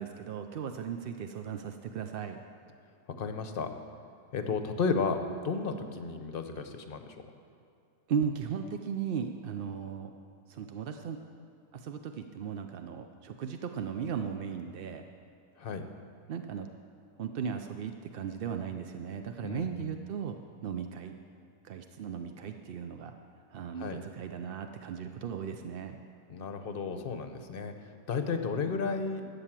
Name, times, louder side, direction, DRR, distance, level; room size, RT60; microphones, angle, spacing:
voice 1, 0.0-2.4 8.1-10.1 10.5-11.2 11.7-15.1 16.3-16.7 17.2-21.1 21.6-23.1 23.5-26.0, right 7 dB, 65° right, 6 dB, 0.5 m, -36 dB
voice 2, 3.2-3.7 4.3-5.2 5.4-7.2 15.6-15.9 19.4-19.9 23.8-24.0 26.3-29.3, left 4 dB, 45° left, 7 dB, 0.9 m, -33 dB
12.5 x 8.6 x 7.4 m, 2.5 s
omnidirectional pair, 1.6 m